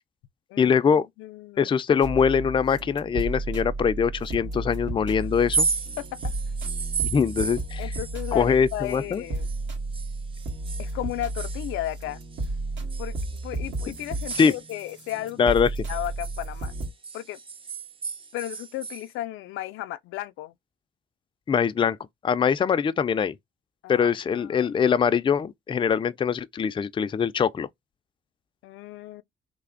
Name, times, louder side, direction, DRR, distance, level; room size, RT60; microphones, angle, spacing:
voice 1, 0.6-1.1 1.6-5.7 7.0-7.9 8.3-9.2 14.4-14.5 15.4-15.7 21.5-22.0 22.2-23.4 23.9-27.7, left 6 dB, 25° left, 0.4 m, -23 dB
voice 2, 1.2-1.7 6.0-6.3 7.8-9.5 10.8-12.2 13.0-15.5 15.9-16.7 17.1-17.4 18.3-20.5 23.8-24.7 28.6-29.2, left 15 dB, 90° left, 0.4 m, -34 dB
sound 1, 2.0-16.9, right 2 dB, 70° right, 1.5 m, -33 dB
sound 2, 5.4-9.6 9.9-12.5 12.9-15.2 15.5-19.0, right 5 dB, 25° right, 0.5 m, -34 dB
3.3 x 2.0 x 3.7 m
cardioid pair, 90°, 20 cm